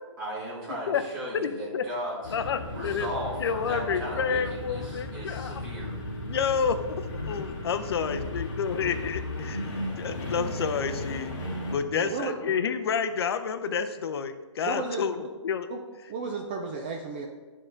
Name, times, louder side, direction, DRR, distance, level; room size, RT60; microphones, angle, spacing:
voice 1, 0.2-2.3 2.7-6.0, right 1 dB, 40° right, -7 dB, 1.6 m, -36 dB
voice 2, 1.3-1.8 2.3-3.1 3.4-5.6 6.2-11.4 11.7-15.1 15.4-15.7, left 6 dB, 55° left, 9 dB, 0.5 m, -29 dB
sound 1, 2.2-11.8, left 1 dB, 40° left, 1.6 m, -35 dB
voice 3, 11.9-12.3 14.6-15.0 15.7-15.8 16.1-17.3, right 4 dB, 20° right, 1 dB, 0.3 m, -33 dB
9.7 x 3.7 x 3.9 m, 1.3 s
hypercardioid pair, 155°, 16 cm